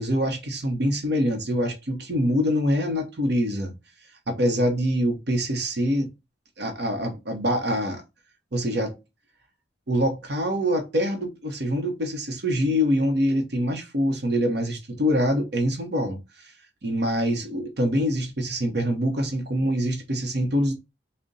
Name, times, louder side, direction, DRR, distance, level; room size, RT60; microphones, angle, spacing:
voice 1, 0.0-3.7 4.3-6.1 6.6-8.0 8.5-9.0 9.9-16.5 16.8-20.7, equal, 60° right, 0.8 m, -25 dB
3.9 x 2.1 x 3.7 m
head